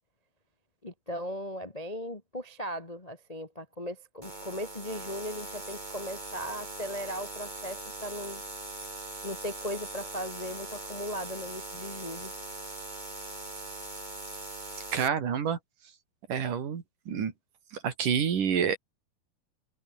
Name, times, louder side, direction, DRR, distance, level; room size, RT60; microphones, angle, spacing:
voice 1, 0.8-8.4 9.2-12.3, equal, 75° left, 0.3 m, -38 dB
sound 1, 4.2-15.1, right 2 dB, 10° right, 3.4 m, -41 dB
voice 2, 14.9-15.6 16.3-17.3 17.7-18.8, right 7 dB, 60° right, 4.2 m, -28 dB
omnidirectional pair, 4.4 m